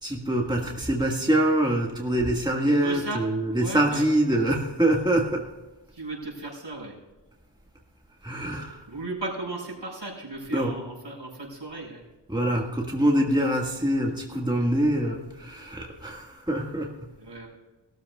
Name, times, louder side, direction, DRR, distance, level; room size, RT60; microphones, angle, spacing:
voice 1, 0.0-5.5 8.2-8.9 10.5-10.8 12.3-17.1, right 1 dB, 10° right, 0 dB, 1.6 m, -25 dB
voice 2, 2.7-3.2 3.5-4.0 5.9-6.9 8.9-12.0 17.2-17.5, right 2 dB, 70° right, -2 dB, 4.9 m, -36 dB
19.0 x 13.5 x 2.3 m, 1.1 s
wide cardioid pair, 45°, 45 cm